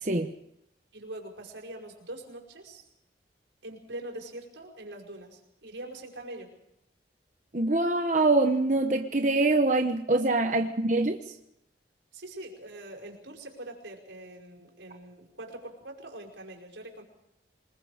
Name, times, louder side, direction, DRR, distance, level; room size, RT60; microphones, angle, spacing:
voice 1, 0.0-0.3 7.5-11.2, right 2 dB, 40° right, 5 dB, 1.0 m, -24 dB
voice 2, 0.9-2.8 3.6-6.5 10.5-10.6 12.1-17.0, right 1 dB, 90° right, 1 dB, 5.8 m, -43 dB
27.5 x 20.0 x 5.1 m, 0.81 s
head